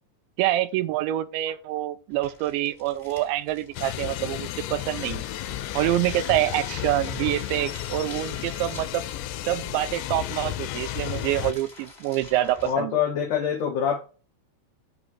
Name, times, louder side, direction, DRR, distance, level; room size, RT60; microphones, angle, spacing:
voice 1, 0.4-5.2 5.8-9.0 9.5-12.9, right 14 dB, 90° right, 3.0 m, -26 dB
sound 1, 2.1-12.7, left 2 dB, 20° left, 2.1 m, -48 dB
sound 2, 3.8-11.5, left 14 dB, 85° left, 2.9 m, -33 dB
voice 2, 12.6-14.0, left 8 dB, 70° left, 2.0 m, -25 dB
11.0 x 5.2 x 6.1 m
omnidirectional pair, 5.2 m